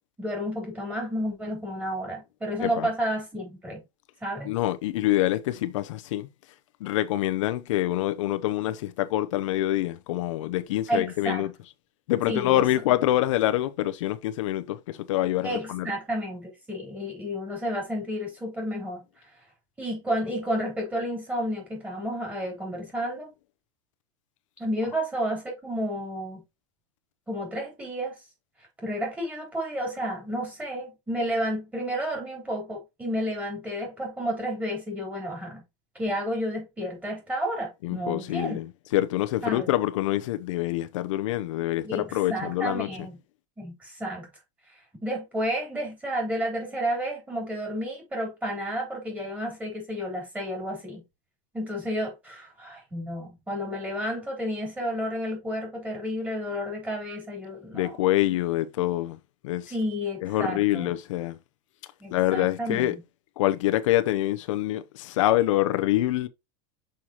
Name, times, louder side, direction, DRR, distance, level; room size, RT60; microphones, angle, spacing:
voice 1, 0.2-3.8 4.2-4.5 10.9-11.4 12.3-12.6 15.4-19.1 19.8-23.3 24.6-26.4 27.3-28.1 28.8-35.6 36.0-38.6 39.4-39.7 41.8-43.2 43.6-44.3 45.0-51.0 51.5-58.0 59.7-60.9 62.0-62.9, equal, 10° right, 3.4 m, -31 dB
voice 2, 4.4-6.3 6.8-11.5 12.1-15.9 37.8-38.7 38.9-42.9 57.7-59.2 59.4-59.7 60.2-61.4 62.1-63.0 63.4-66.3, left 15 dB, 70° left, 0.7 m, -26 dB
6.4 x 5.6 x 2.9 m
supercardioid pair, 160°, 17 cm